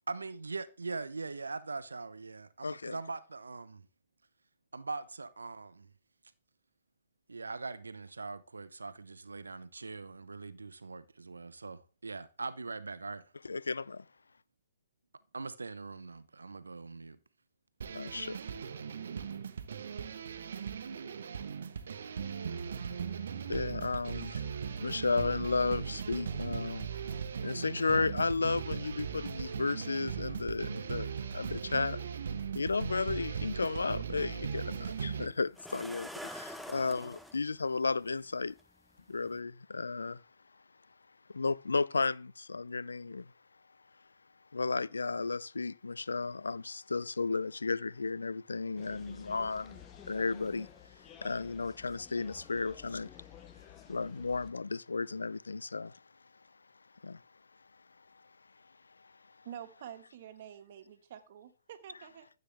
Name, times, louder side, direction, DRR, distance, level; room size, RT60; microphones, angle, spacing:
voice 1, 0.1-3.8 4.7-5.9 7.3-13.2 15.3-17.2, right 3 dB, 90° right, 0.8 m, -41 dB
voice 2, 2.6-3.0 13.4-14.0 17.9-18.4 23.5-24.4 24.8-26.9 27.4-32.0 32.5-38.5 39.1-40.2 41.3-43.3 44.5-50.7 51.2-53.1 53.9-56.0 57.0-57.2, left 4 dB, 85° left, 0.4 m, -33 dB
sound 1, 17.8-35.3, right 7 dB, 70° right, 1.1 m, -38 dB
sound 2, 34.4-34.5 35.6-37.4 38.6-38.7 39.2-39.4, equal, ahead, 0.9 m, -45 dB
sound 3, 48.8-54.5, left 10 dB, 20° left, 1.2 m, -53 dB
voice 3, 59.4-62.3, right 10 dB, 50° right, 1.6 m, -48 dB
14.5 x 8.0 x 3.4 m
hypercardioid pair, 130°, 0 cm